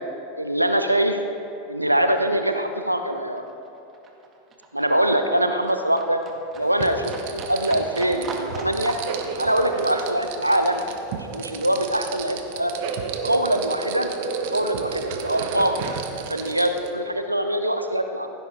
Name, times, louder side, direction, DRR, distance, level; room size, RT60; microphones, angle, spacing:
voice 1, 0.4-1.2 1.7-3.4 4.7-6.2 6.6-9.0 9.4-10.8 11.1-12.7 13.2-14.1 14.5-15.8 16.3-18.3, right 1 dB, 90° right, 7 dB, 0.8 m, -23 dB
Livestock farm animals working animals, 1.6-12.6 12.9-14.0 14.3-14.4, right 3 dB, 30° right, 2.0 m, -40 dB
sound 1, 6.6-16.9, right 5 dB, 55° right, 1.2 m, -32 dB
16.0 x 16.0 x 3.5 m, 2.9 s
figure-of-eight pair, 85°, 0 cm